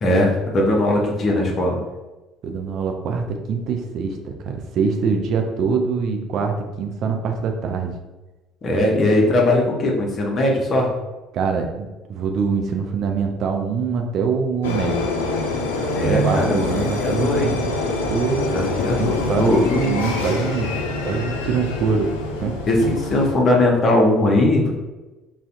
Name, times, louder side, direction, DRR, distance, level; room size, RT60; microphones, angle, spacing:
voice 1, 0.0-1.8 8.6-10.9 15.9-17.5 18.5-19.9 22.7-24.7, left 1 dB, 40° left, -1 dB, 0.6 m, -19 dB
voice 2, 2.4-8.0 11.3-15.1 16.2-17.6 18.1-18.5 19.0-20.7 21.0-22.1 22.4-22.6, right 5 dB, 50° right, 3 dB, 0.3 m, -24 dB
sound 1, 14.6-23.4, left 2 dB, 75° left, 0.3 m, -25 dB
2.5 x 2.1 x 2.4 m, 1.1 s
figure-of-eight pair, 55°, 0 cm